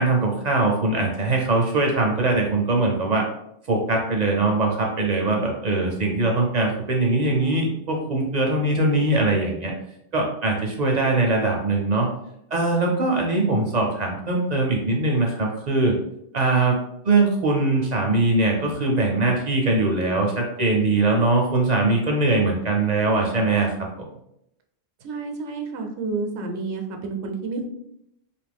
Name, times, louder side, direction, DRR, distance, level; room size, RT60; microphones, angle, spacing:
voice 1, 0.0-3.2 3.7-9.7 10.1-12.1 12.5-15.9 16.3-16.8 17.0-23.9, right 2 dB, 50° right, 0 dB, 0.5 m, -21 dB
voice 2, 25.0-27.7, right 4 dB, 90° right, 4 dB, 0.9 m, -30 dB
2.7 x 2.5 x 3.4 m, 0.78 s
omnidirectional pair, 1.1 m